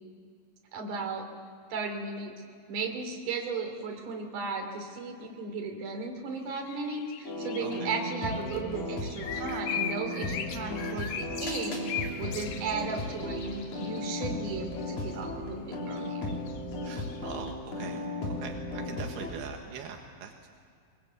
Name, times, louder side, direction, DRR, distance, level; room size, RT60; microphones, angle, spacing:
voice 1, 0.7-1.2 1.7-2.3 2.7-11.8 12.2-16.2, right 4 dB, 55° right, 3 dB, 4.0 m, -35 dB
sound 1, 6.6-14.9 15.1-15.3 15.9-17.5, left 8 dB, 80° left, 3.4 m, -39 dB
sound 2, 7.2-19.3, left 1 dB, 50° left, 5.0 m, -35 dB
voice 2, 7.6-7.9 16.8-18.0 18.4-20.5, right 6 dB, 80° right, 3 dB, 3.4 m, -42 dB
23.5 x 22.0 x 8.2 m, 2.3 s
omnidirectional pair, 4.6 m